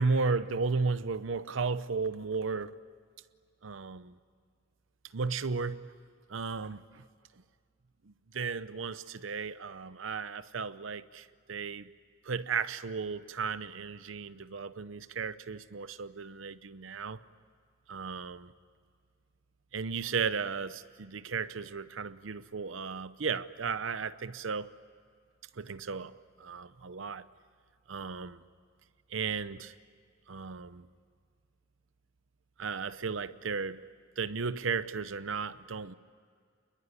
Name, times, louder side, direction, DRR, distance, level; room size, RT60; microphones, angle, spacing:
voice 1, 0.0-2.7 3.6-4.1 5.1-5.8 6.3-7.0 8.1-11.9 12.2-17.2 17.9-18.5 19.7-24.8 25.6-27.3 27.9-28.4 29.1-29.7 30.3-30.9 32.6-33.8 34.2-35.9, right 5 dB, 70° right, 0.7 m, -34 dB
28.5 x 21.5 x 9.7 m
head